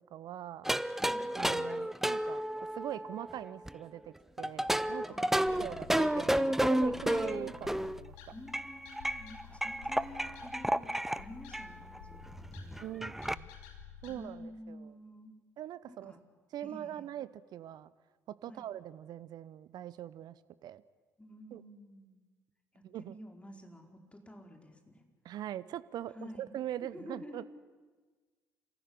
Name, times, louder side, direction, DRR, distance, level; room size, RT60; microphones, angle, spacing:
voice 1, 0.0-0.7 1.3-2.4 2.7-5.1 5.5-7.7 8.0-8.1 12.8-13.5 14.0-14.9 15.6-16.1 16.5-17.9 18.3-20.8 21.5-21.6 22.8-23.2 25.2-27.4, right 12 dB, 55° right, 17 dB, 0.9 m, -42 dB
sound 1, 0.7-3.7 4.4-8.0 8.5-11.2 11.5-11.7 12.0-12.1 12.3-13.4, right 1 dB, 5° right, 0.7 m, -31 dB
voice 2, 0.8-1.3 5.1-5.7 8.3-10.9 11.2-13.0 14.1-15.3 15.9-16.2 16.6-17.0 18.5-18.7 21.2-22.2 22.7-25.0 26.1-26.5 26.8-27.5, left 1 dB, 15° left, 4 dB, 4.9 m, -50 dB
sound 2, 5.4-14.2, left 7 dB, 75° left, 2.8 m, -52 dB
28.0 x 15.5 x 9.9 m, 1.4 s
hypercardioid pair, 50°, 8 cm